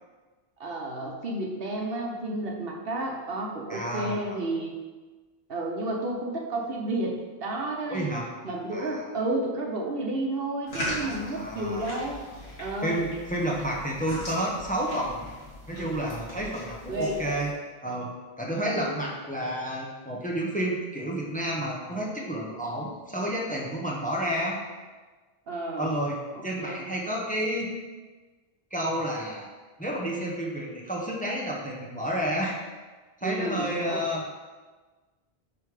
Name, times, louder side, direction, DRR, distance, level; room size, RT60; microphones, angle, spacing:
voice 1, 0.6-4.7 5.5-8.2 8.4-12.2 12.6-13.0 16.4-16.5 16.9-17.4 18.6-19.0 25.5-26.0 26.6-26.9 33.2-34.0, right 2 dB, 65° right, 0 dB, 1.1 m, -31 dB
voice 2, 3.7-4.2 7.9-8.3 8.7-9.0 11.0-11.9 12.8-15.3 15.7-17.5 17.8-24.6 25.8-27.7 28.7-29.5 29.8-32.6 33.2-34.2, right 1 dB, 10° left, -2 dB, 0.9 m, -30 dB
sound 1, 10.7-17.5, left 1 dB, 80° left, 2.4 m, -39 dB
5.5 x 4.9 x 4.9 m, 1.3 s
omnidirectional pair, 1.1 m